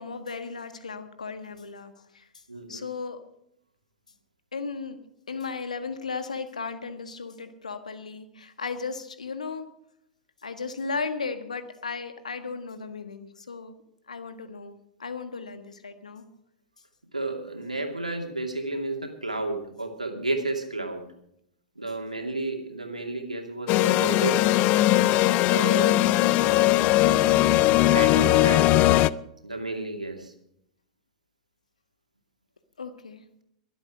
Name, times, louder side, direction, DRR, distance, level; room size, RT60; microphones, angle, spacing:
voice 1, 0.0-2.4 2.7-3.2 4.5-5.0 5.3-9.7 10.4-13.7 14.1-16.2 32.8-33.2, left 4 dB, 75° left, 9 dB, 1.6 m, -35 dB
voice 2, 2.5-2.8 17.1-21.1 21.8-24.5 25.5-26.0 27.0-29.0 29.4-30.3, right 2 dB, 90° right, 3 dB, 2.5 m, -32 dB
sound 1, 23.7-29.1, left 16 dB, 35° left, 0.4 m, -20 dB
23.0 x 8.2 x 4.8 m, 0.76 s
figure-of-eight pair, 100°, 4 cm